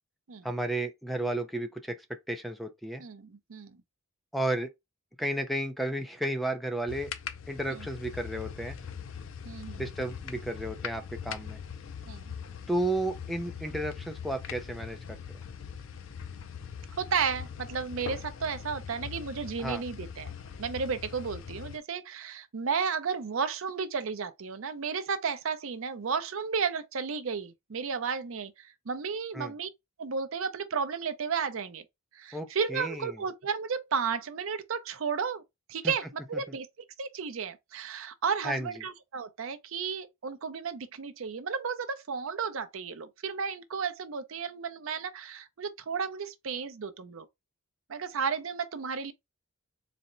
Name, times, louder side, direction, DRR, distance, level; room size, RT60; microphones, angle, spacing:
voice 1, 0.4-3.0 4.3-4.7 5.2-7.1 7.5-8.8 9.8-11.6 12.7-15.2 19.6-19.8 29.3-29.5 32.3-33.2 35.8-35.9 38.4-38.7, right 1 dB, ahead, 0.4 m, -33 dB
voice 2, 3.0-3.8 7.7-7.9 9.4-9.8 12.1-12.3 17.0-20.3 20.6-29.7 30.0-31.8 32.1-35.4 35.7-36.7 37.0-47.3 47.9-49.1, right 6 dB, 65° right, 0.5 m, -33 dB
sound 1, 6.9-21.8, left 7 dB, 65° left, 0.5 m, -41 dB
4.1 x 2.1 x 3.7 m
head